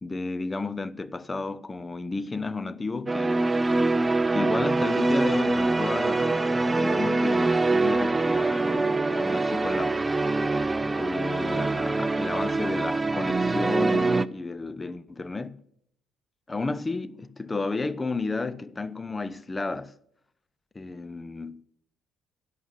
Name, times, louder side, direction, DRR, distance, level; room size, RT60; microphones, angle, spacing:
voice 1, 0.0-3.4 4.3-10.0 10.9-15.6 16.5-19.9 20.7-21.6, left 3 dB, 25° left, 0.7 m, -32 dB
sound 1, 3.1-14.3, right 3 dB, 20° right, 0.5 m, -24 dB
11.0 x 7.6 x 9.5 m
figure-of-eight pair, 45°, 0 cm